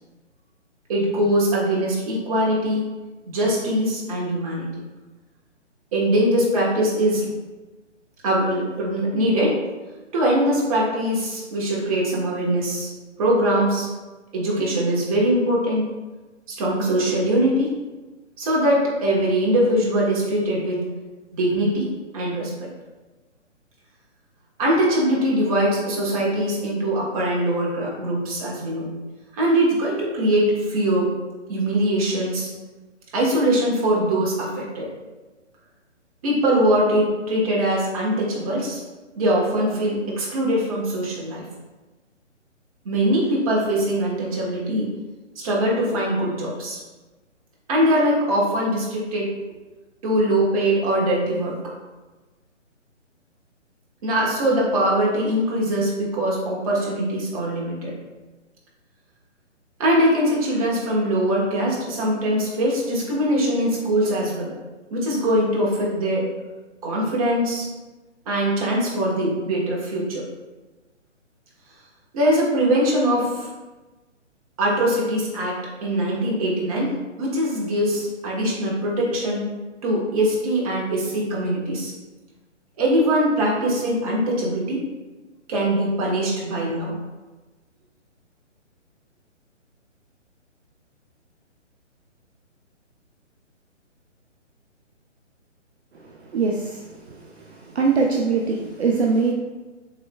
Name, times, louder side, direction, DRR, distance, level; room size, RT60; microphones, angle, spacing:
voice 1, 0.9-2.9 3.3-4.7 5.9-7.3 8.2-9.6 10.1-12.9 13.2-13.9 14.3-15.9 16.5-17.7 18.4-20.8 21.3-22.7 24.6-28.9 29.3-31.1 31.5-32.5 33.1-34.9 36.2-38.8 39.1-41.4 42.8-44.9 45.4-46.8 47.7-49.3 50.0-51.5 54.0-57.9 59.8-64.5 64.9-66.3 66.8-67.7 68.3-70.2 72.1-73.5 74.6-76.9 77.2-79.5 79.8-81.9 82.8-84.8 85.5-86.9, right 1 dB, 30° right, -4 dB, 1.2 m, -22 dB
voice 2, 96.3-97.2 97.7-99.3, right 4 dB, 60° right, -1 dB, 0.6 m, -22 dB
6.7 x 3.2 x 2.2 m, 1.2 s
figure-of-eight pair, 145°, 37 cm